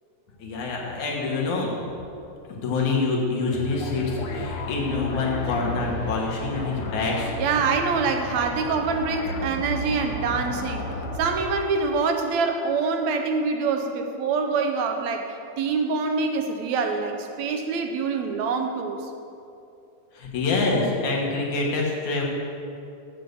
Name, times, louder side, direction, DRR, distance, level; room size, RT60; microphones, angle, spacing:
voice 1, 0.4-1.7 2.5-7.3 20.1-22.2, left 3 dB, 90° left, -2 dB, 3.0 m, -26 dB
sound 1, 3.5-11.7, left 2 dB, 65° left, 1.5 m, -33 dB
voice 2, 7.4-10.9 11.2-19.1, right 4 dB, 75° right, 4 dB, 2.0 m, -25 dB
7.9 x 7.6 x 6.8 m, 2.6 s
omnidirectional pair, 3.4 m